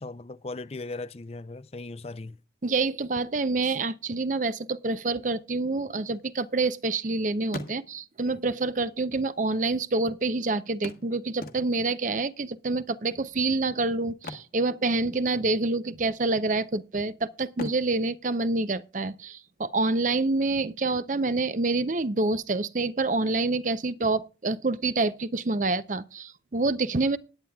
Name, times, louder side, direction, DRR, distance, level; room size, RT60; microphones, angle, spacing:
voice 1, 0.0-2.4, left 2 dB, 35° left, 0.5 m, -38 dB
voice 2, 2.6-27.2, right 3 dB, 45° right, 0.6 m, -27 dB
sound 1, 5.9-7.1 7.4-8.3 9.2-9.3 9.5-9.6 10.8-12.0 14.1-15.4 15.6-15.9 16.4-17.0 17.5-19.3 21.2-21.3 21.8-21.9, left 2 dB, 50° left, 1.2 m, -42 dB
18.5 x 9.3 x 2.3 m
head